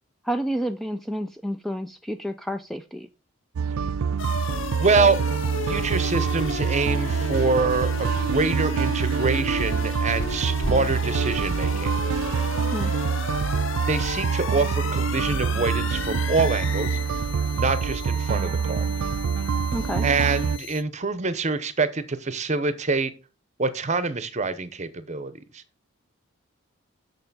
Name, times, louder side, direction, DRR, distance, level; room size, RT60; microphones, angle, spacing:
voice 1, 0.2-3.1 12.7-12.9 19.7-20.1, equal, ahead, 0.3 m, -30 dB
sound 1, 3.6-20.6, right 6 dB, 90° right, 0.4 m, -26 dB
sound 2, 4.2-20.8, left 6 dB, 65° left, 0.5 m, -35 dB
voice 2, 4.8-5.2 5.7-11.9 13.9-17.0 17.5-18.9 20.0-23.1 23.6-25.6, right 4 dB, 35° right, 0.7 m, -25 dB
sound 3, 6.0-13.0, equal, 30° left, 1.4 m, -42 dB
6.7 x 6.5 x 4.0 m
head